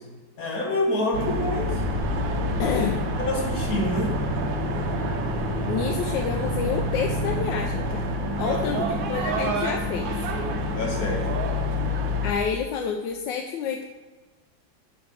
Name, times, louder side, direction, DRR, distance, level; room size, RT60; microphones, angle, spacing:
voice 1, 0.4-1.8 3.2-4.2 8.5-8.9 10.7-11.4, left 1 dB, 55° left, -1 dB, 1.9 m, -27 dB
sound 1, 1.1-12.3, left 1 dB, 90° right, 1.6 m, -28 dB
sound 2, 1.4-8.1, right 4 dB, 60° right, 0.3 m, -37 dB
sound 3, 1.6-11.2, equal, 40° left, 3.3 m, -34 dB
voice 2, 2.6-3.1 5.7-8.0 8.4-10.1 12.2-13.9, left 7 dB, 80° left, 4 dB, 1.2 m, -29 dB
6.3 x 5.9 x 5.6 m, 1.3 s
omnidirectional pair, 2.0 m